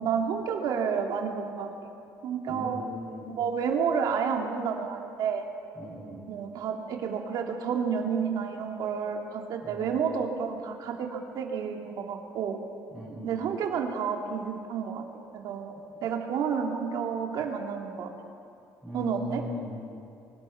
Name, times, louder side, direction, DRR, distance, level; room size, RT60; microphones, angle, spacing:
voice 1, 0.0-1.7 2.2-2.8 3.3-5.5 6.3-12.6 13.2-15.0 15.3-15.7 16.0-18.1 18.9-19.5, right 6 dB, 65° right, 2 dB, 2.6 m, -30 dB
voice 2, 2.5-3.3 5.7-6.2 9.6-9.9 12.9-13.3 18.8-19.8, left 1 dB, ahead, -11 dB, 6.6 m, -39 dB
24.5 x 20.5 x 5.8 m, 2.6 s
cardioid pair, 160°, 7 cm